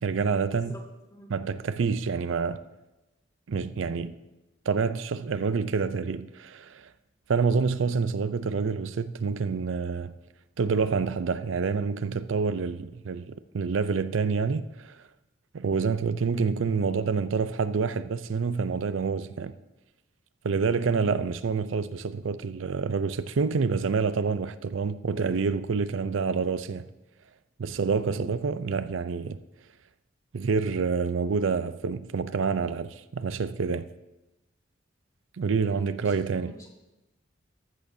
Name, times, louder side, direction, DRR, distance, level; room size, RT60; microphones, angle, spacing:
voice 1, 0.0-0.7 1.3-2.6 3.5-4.2 4.7-6.9 7.3-10.1 10.6-15.0 15.5-19.5 20.4-26.9 27.6-29.4 30.3-33.9 35.4-36.5, right 5 dB, 90° right, 0.5 m, -27 dB
voice 2, 35.6-36.7, left 1 dB, 15° left, 1.9 m, -46 dB
14.0 x 12.5 x 2.7 m
head